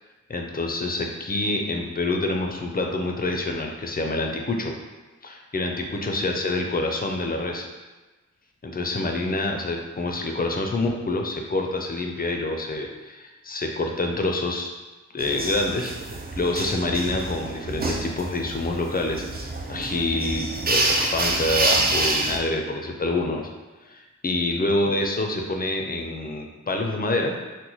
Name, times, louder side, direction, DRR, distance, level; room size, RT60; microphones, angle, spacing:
voice 1, 0.3-4.8 5.2-7.7 8.6-14.7 15.1-15.9 16.4-19.2 19.7-23.5 23.9-27.4, left 2 dB, 30° left, 2 dB, 0.4 m, -27 dB
sound 1, 15.2-22.4, right 2 dB, 35° right, 0.4 m, -27 dB
3.0 x 2.1 x 3.9 m, 1.2 s
wide cardioid pair, 80°, 30 cm